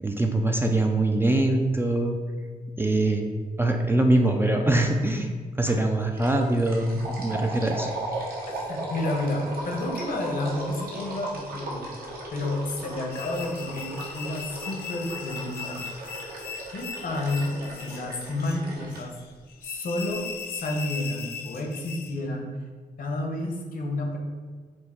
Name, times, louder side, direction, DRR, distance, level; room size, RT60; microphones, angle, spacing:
voice 1, 0.0-2.2 2.8-3.3 3.6-5.3 5.6-7.9, right 2 dB, 15° right, 3 dB, 0.3 m, -23 dB
sound 1, 5.7-5.9 6.2-19.0, right 2 dB, 70° right, 1.1 m, -36 dB
voice 2, 8.5-16.1 16.7-17.5 17.8-19.2 19.6-22.6 23.0-24.2, left 2 dB, 60° left, 1 dB, 0.9 m, -31 dB
sound 2, 13.1-22.2, left 7 dB, 80° left, 0.4 m, -39 dB
4.5 x 2.7 x 4.3 m, 1.5 s
cardioid pair, 105°, 16 cm